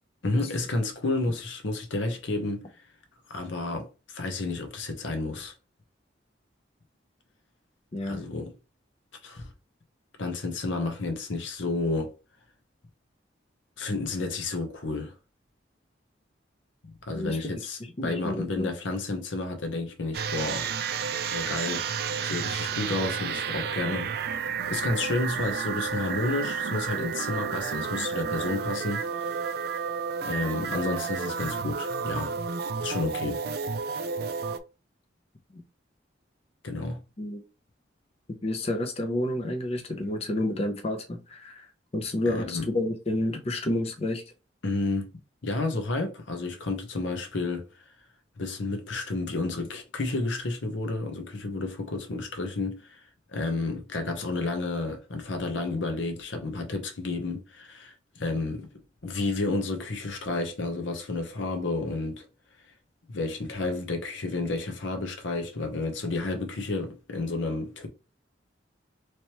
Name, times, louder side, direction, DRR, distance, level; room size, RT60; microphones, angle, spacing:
voice 1, 0.2-2.7 3.3-5.5 8.0-8.5 9.2-9.5 10.2-12.2 13.8-15.1 16.8-20.7 21.3-21.9 22.2-24.4 24.7-29.8 30.2-32.3 32.8-33.4 36.6-37.0 42.3-42.6 44.6-45.1 45.4-47.6 48.4-53.0 53.3-58.7 59.0-62.3 63.1-67.9, left 2 dB, 80° left, 0.8 m, -31 dB
voice 2, 17.8-18.7 35.5-35.6 37.2-37.4 38.4-41.7 41.9-44.2, left 1 dB, 35° left, 0.6 m, -30 dB
sound 1, 20.1-34.6, right 6 dB, 55° right, 0.3 m, -31 dB
3.2 x 3.0 x 2.9 m
head